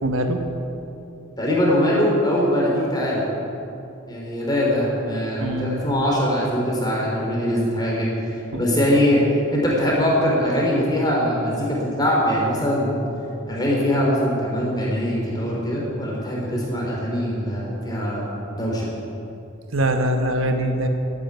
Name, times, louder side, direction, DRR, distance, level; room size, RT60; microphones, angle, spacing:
voice 1, 0.0-0.4 5.4-5.8 8.5-8.6 19.7-20.9, right 1 dB, 75° right, 5 dB, 1.3 m, -23 dB
voice 2, 1.4-3.2 4.1-8.3 8.6-9.2 9.5-13.0 13.5-18.3 18.5-18.9, equal, 20° left, -4 dB, 3.8 m, -22 dB
13.5 x 9.5 x 9.4 m, 2.8 s
head